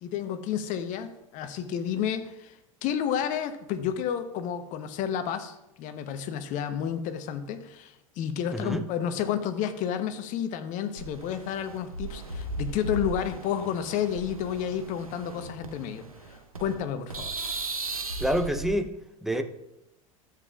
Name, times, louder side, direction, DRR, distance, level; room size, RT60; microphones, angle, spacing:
voice 1, 0.0-17.4, left 9 dB, 45° left, 10 dB, 1.0 m, -31 dB
voice 2, 8.5-8.8 18.2-19.4, equal, ahead, 7 dB, 0.8 m, -28 dB
sound 1, 11.0-16.8 17.1-18.7, right 3 dB, 90° right, 0.8 m, -37 dB
13.0 x 7.6 x 2.4 m, 0.85 s
figure-of-eight pair, 75°, 18 cm